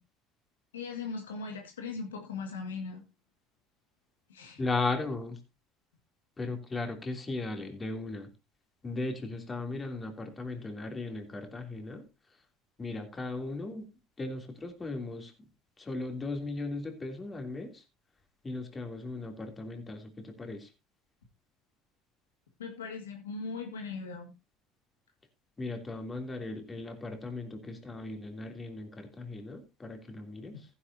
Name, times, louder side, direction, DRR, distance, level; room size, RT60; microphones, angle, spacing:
voice 1, 0.7-3.0 4.3-4.6 22.6-24.3, left 4 dB, 90° left, 2.1 m, -39 dB
voice 2, 4.6-5.4 6.4-8.3 8.8-12.0 12.8-13.9 14.2-15.3 15.8-17.8 18.4-20.7 25.6-30.6, left 3 dB, 25° left, 3.1 m, -37 dB
15.5 x 10.0 x 2.8 m
hypercardioid pair, 75°, 0 cm